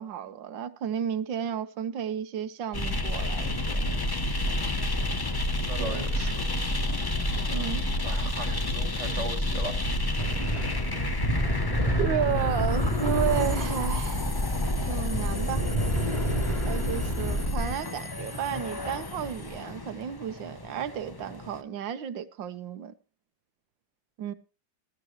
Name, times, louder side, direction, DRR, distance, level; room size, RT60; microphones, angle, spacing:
voice 1, 0.0-4.0 5.8-6.0 7.5-7.8 12.0-14.3 14.9-15.7 16.6-22.9 24.2-24.3, right 9 dB, 80° right, 1.7 m, -32 dB
sound 1, 2.7-21.6, left 1 dB, 35° left, 0.4 m, -30 dB
voice 2, 5.7-6.4 8.0-9.9, right 3 dB, 40° right, 1.9 m, -38 dB
sound 2, 10.2-17.5, equal, 15° left, 3.3 m, -30 dB
18.5 x 14.0 x 3.1 m
omnidirectional pair, 2.0 m